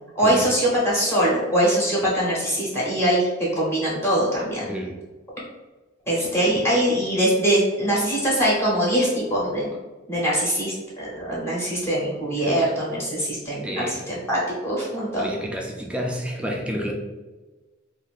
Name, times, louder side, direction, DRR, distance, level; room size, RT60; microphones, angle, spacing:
voice 1, 0.1-4.7 6.1-9.7 10.1-15.3, right 1 dB, 15° left, -7 dB, 0.8 m, -22 dB
voice 2, 4.7-5.0 12.4-12.5 13.6-14.0 15.1-16.9, equal, 5° right, 1 dB, 0.4 m, -30 dB
2.5 x 2.4 x 3.4 m, 1.2 s
head